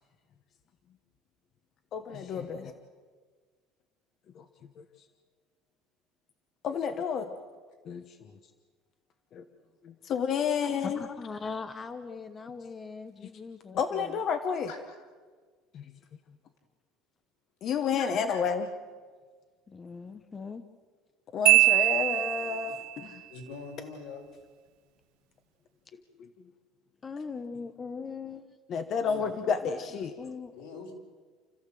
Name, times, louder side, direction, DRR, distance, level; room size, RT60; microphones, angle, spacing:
voice 1, 1.9-2.7 4.3-4.4 4.8-4.9 6.6-7.3 7.9-8.3 9.3-9.4 9.8-11.0 13.7-14.7 15.7-15.8 17.6-18.7 21.3-23.2 26.2-26.3 28.7-30.1, left 6 dB, 40° left, 7 dB, 1.1 m, -30 dB
voice 2, 10.8-14.2 17.9-18.0 19.7-20.6 27.0-28.4 29.6-29.7 30.2-30.5, left 5 dB, 20° left, 9 dB, 0.9 m, -40 dB
voice 3, 14.7-15.1 18.0-18.5 22.7-22.8 23.3-24.2 29.0-29.3 30.5-30.9, left 4 dB, 80° left, 1 dB, 5.3 m, -44 dB
Marimba xylophone, 21.5-22.9, right 17 dB, 80° right, 0.6 m, -22 dB
29.0 x 14.5 x 7.7 m, 1.5 s
cardioid pair, 165°, 0 cm